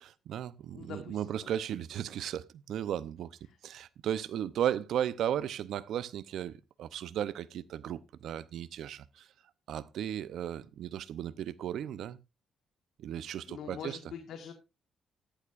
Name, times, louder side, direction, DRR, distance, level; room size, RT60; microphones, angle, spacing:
voice 1, 0.0-3.4 3.6-9.3 9.7-12.2 13.0-14.0, right 10 dB, 75° right, 0.7 m, -35 dB
voice 2, 0.7-1.5 13.5-14.5, left 7 dB, 75° left, 1.6 m, -44 dB
15.0 x 11.5 x 2.5 m
cardioid pair, 90°, 0 cm